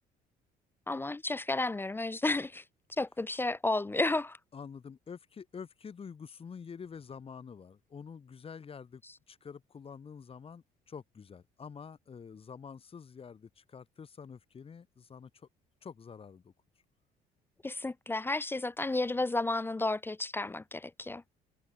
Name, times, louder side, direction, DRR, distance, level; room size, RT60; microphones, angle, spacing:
voice 1, 0.9-2.6 3.0-4.4 17.6-21.2, left 2 dB, 15° left, 0.5 m, -32 dB
voice 2, 4.5-9.0 9.3-15.5 15.8-16.5, left 6 dB, 35° left, 3.5 m, -47 dB
cardioid pair, 110°, 17 cm